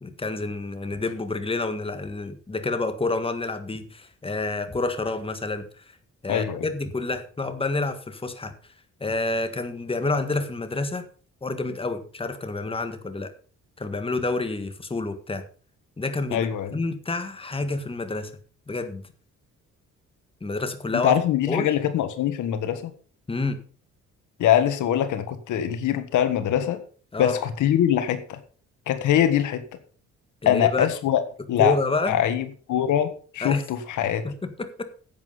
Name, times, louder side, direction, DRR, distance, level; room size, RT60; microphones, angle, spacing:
voice 1, 0.0-5.8 6.2-8.5 9.0-11.0 11.4-13.3 13.8-15.4 16.0-18.3 18.7-19.0 20.4-21.2 21.5-21.7 23.3-23.6 27.1-27.4 30.4-30.9 31.6-32.1 33.4-33.6 34.2-34.8, left 3 dB, 20° left, 8 dB, 1.6 m, -28 dB
voice 2, 6.3-6.6 16.3-16.8 20.9-22.9 24.4-26.8 27.2-28.4 28.9-29.6 30.4-31.2 31.5-31.7 32.1-34.2, left 10 dB, 80° left, 10 dB, 1.5 m, -23 dB
10.5 x 8.5 x 5.7 m, 0.42 s
cardioid pair, 90°, 30 cm